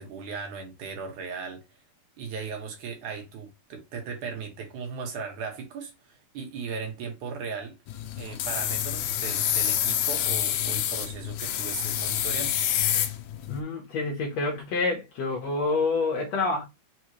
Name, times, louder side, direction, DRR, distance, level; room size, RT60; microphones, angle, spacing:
voice 1, 0.0-1.6 2.2-7.8 8.2-12.5, right 5 dB, 70° right, 2.4 m, -37 dB
sound 1, 7.9-13.6, left 10 dB, 80° left, 1.8 m, -27 dB
voice 2, 13.5-16.6, left 3 dB, 65° left, 1.9 m, -27 dB
5.5 x 3.0 x 3.0 m
omnidirectional pair, 3.7 m